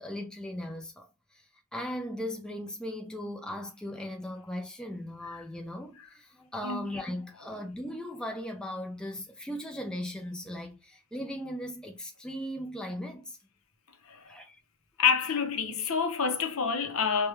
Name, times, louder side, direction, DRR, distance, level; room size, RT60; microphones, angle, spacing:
voice 1, 0.0-13.4 14.3-14.6, left 1 dB, 5° left, 0.5 m, -38 dB
voice 2, 14.0-14.4 15.0-17.3, left 6 dB, 65° left, 0.7 m, -28 dB
4.8 x 2.2 x 3.1 m
head